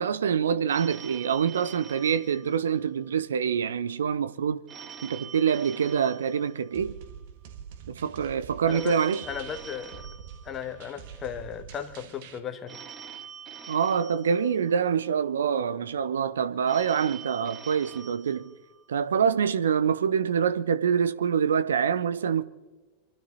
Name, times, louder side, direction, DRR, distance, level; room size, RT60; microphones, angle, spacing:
voice 1, 0.0-4.6 5.0-7.0 7.9-9.2 13.7-18.5 18.9-22.4, right 7 dB, 65° right, 0.8 m, -25 dB
Telephone, 0.7-3.2 4.7-7.2 8.7-11.2 12.7-15.2 16.7-19.2, right 7 dB, 30° right, 1.2 m, -45 dB
sound 1, 6.7-12.4, right 8 dB, 50° right, 1.6 m, -45 dB
voice 2, 8.6-10.1 10.4-12.8, left 8 dB, 25° left, 1.5 m, -36 dB
26.0 x 12.0 x 4.1 m
figure-of-eight pair, 90°, 0 cm